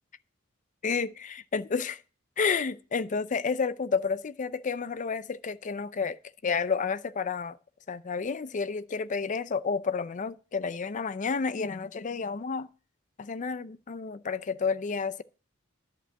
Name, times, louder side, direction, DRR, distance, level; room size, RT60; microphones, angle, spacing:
voice 1, 0.8-2.0 2.4-7.6 7.9-12.7 13.2-15.2, left 5 dB, 40° left, 0.5 m, -30 dB
11.0 x 5.4 x 7.7 m
head